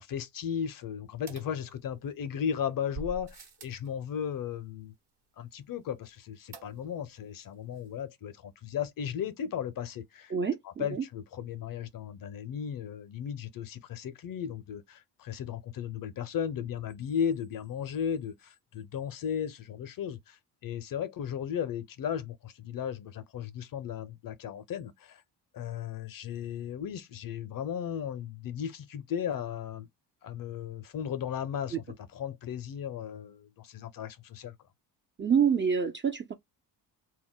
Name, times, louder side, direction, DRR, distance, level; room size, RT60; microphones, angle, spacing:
voice 1, 0.0-4.9 5.4-10.3 10.6-25.2 25.5-29.9 30.2-31.8 32.1-34.5, left 8 dB, 45° left, 0.6 m, -35 dB
sound 1, 1.3-2.2 2.9-3.9 6.5-7.1 7.4-7.5 7.8-7.9, right 4 dB, 55° right, 1.1 m, -45 dB
voice 2, 10.3-11.0 31.7-31.8 35.2-36.3, right 7 dB, 25° right, 0.4 m, -27 dB
2.2 x 2.0 x 3.5 m
supercardioid pair, 55°, 47 cm